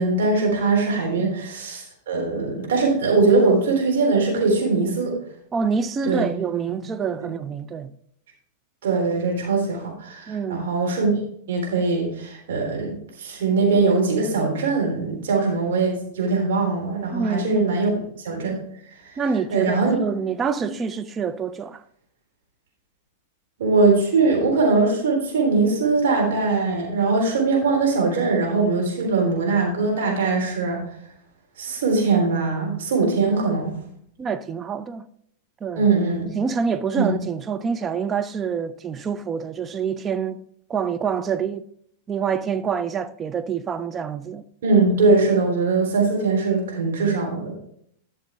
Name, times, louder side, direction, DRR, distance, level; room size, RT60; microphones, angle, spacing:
voice 1, 0.0-5.1 6.0-6.3 6.7-6.8 7.2-7.3 8.8-11.1 11.5-17.9 18.2-18.6 19.5-19.9 23.6-30.8 31.6-33.7 35.7-36.3 36.9-37.1 44.6-47.5, right 3 dB, 60° right, 3.5 m, -21 dB
voice 2, 5.5-7.9 10.3-10.7 17.1-17.6 19.2-21.8 34.2-35.1 35.6-35.9 36.3-40.4 40.7-41.7 42.1-44.4, right 6 dB, 25° right, 0.5 m, -26 dB
12.0 x 6.7 x 3.4 m
figure-of-eight pair, 95°, 0 cm